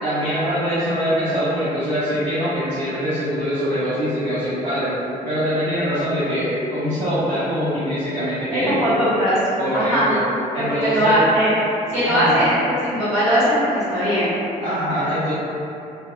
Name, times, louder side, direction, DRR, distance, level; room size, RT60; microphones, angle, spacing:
voice 1, 0.0-5.0 5.2-8.8 9.6-10.2 10.5-11.2 12.0-12.5 14.6-15.3, equal, 90° right, -15 dB, 0.5 m, -23 dB
voice 2, 8.5-9.4 9.7-10.1 10.5-11.5 11.9-14.3, equal, 70° right, -15 dB, 1.5 m, -19 dB
2.6 x 2.1 x 2.4 m, 2.8 s
figure-of-eight pair, 40°, 21 cm